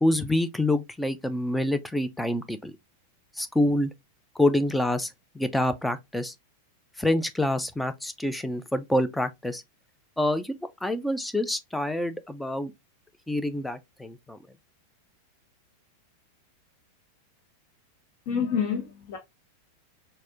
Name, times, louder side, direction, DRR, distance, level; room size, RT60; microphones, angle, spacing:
voice 1, 0.0-2.7 3.4-3.9 4.4-6.3 7.0-9.6 10.2-10.5 10.8-12.7 13.3-14.4, left 1 dB, 5° left, 0.4 m, -26 dB
voice 2, 18.3-19.2, left 7 dB, 45° left, 0.7 m, -28 dB
4.1 x 2.1 x 2.6 m
figure-of-eight pair, 90°, 0 cm